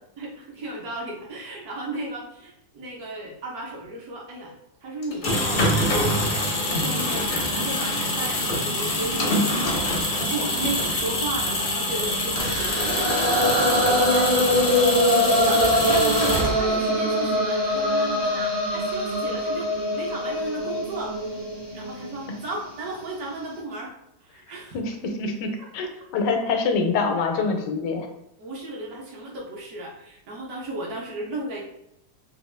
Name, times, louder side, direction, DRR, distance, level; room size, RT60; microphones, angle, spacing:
voice 1, 0.2-4.5 4.8-13.2 13.5-14.9 15.4-21.4 21.7-23.9 24.2-24.8 28.4-31.6, right 2 dB, 65° right, -2 dB, 1.3 m, -34 dB
sound 1, 5.0-16.9, left 1 dB, 55° left, 0.5 m, -25 dB
sound 2, 12.4-22.4, left 1 dB, 45° right, 0.8 m, -23 dB
voice 2, 24.7-28.1, left 4 dB, 90° left, 4 dB, 1.2 m, -25 dB
3.4 x 2.3 x 3.1 m, 0.81 s
omnidirectional pair, 1.8 m